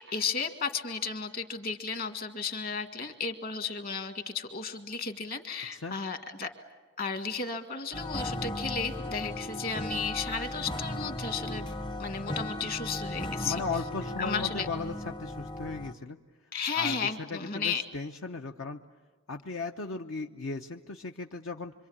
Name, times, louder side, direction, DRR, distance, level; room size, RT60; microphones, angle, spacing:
voice 1, 0.0-6.5 7.0-11.7 12.0-13.6 14.2-14.7 16.5-17.8, left 5 dB, 45° left, 7 dB, 1.8 m, -34 dB
sound 1, 7.9-15.9, left 1 dB, 25° left, 0.7 m, -36 dB
voice 2, 13.4-16.2 16.7-17.0 17.3-18.8 19.3-21.7, left 4 dB, 75° left, 3 dB, 0.8 m, -37 dB
26.0 x 25.5 x 8.7 m, 1.3 s
head